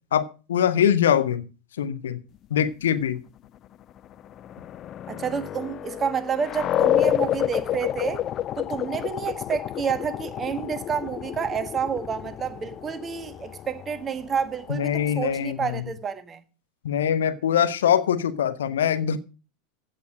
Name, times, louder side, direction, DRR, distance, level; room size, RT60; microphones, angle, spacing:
voice 1, 0.1-1.4 1.8-2.2 2.5-3.2 14.7-15.8 16.8-19.2, left 9 dB, 65° left, 1.2 m, -23 dB
sound 1, 4.0-15.5, left 11 dB, 35° left, 0.5 m, -29 dB
voice 2, 5.1-8.2 8.6-16.4, right 7 dB, 25° right, 1.5 m, -29 dB
15.5 x 7.4 x 6.3 m
figure-of-eight pair, 80°, 0 cm